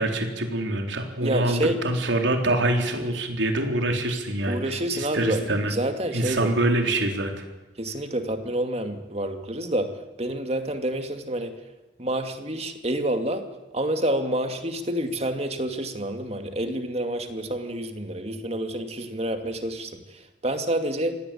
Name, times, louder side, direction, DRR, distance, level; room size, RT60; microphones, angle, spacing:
voice 1, 0.0-5.7 6.1-7.5, right 1 dB, 80° right, 4 dB, 4.1 m, -25 dB
voice 2, 1.2-1.8 4.5-5.4 5.7-6.5 7.8-9.9 10.2-11.5 12.0-13.5 13.7-21.2, right 1 dB, 35° right, 6 dB, 2.4 m, -28 dB
26.5 x 18.5 x 8.7 m, 1.1 s
head